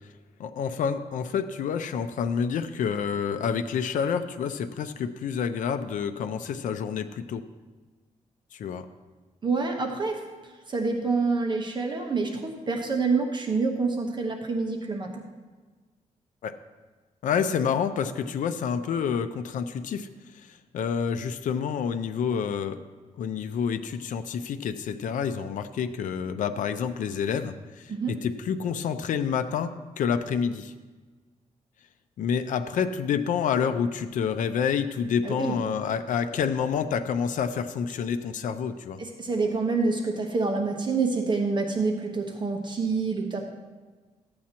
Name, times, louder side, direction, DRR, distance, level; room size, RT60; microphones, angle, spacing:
voice 1, 0.4-7.4 8.5-8.9 16.4-16.5 17.2-20.1 20.5-22.8 23.2-30.7 32.2-39.0, left 7 dB, 80° left, 9 dB, 0.5 m, -28 dB
voice 2, 9.4-15.2 27.9-28.1 35.2-35.5 39.0-43.4, right 4 dB, 35° right, 2 dB, 1.0 m, -27 dB
13.5 x 8.5 x 2.9 m, 1.3 s
cardioid pair, 115°, 13 cm